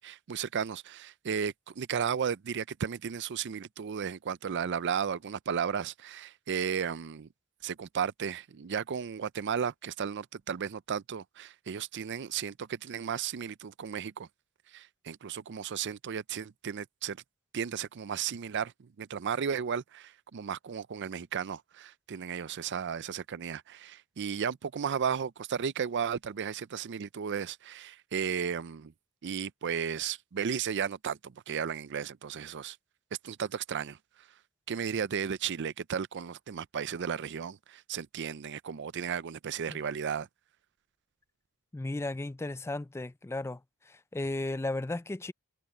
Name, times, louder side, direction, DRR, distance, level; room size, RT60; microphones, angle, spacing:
voice 1, 0.0-7.3 7.6-14.3 14.7-17.2 17.5-28.9 29.2-32.8 33.2-34.0 34.7-40.3, right 7 dB, 55° right, 0.5 m, -34 dB
voice 2, 41.7-43.6 43.9-45.3, left 2 dB, 10° left, 0.3 m, -35 dB
head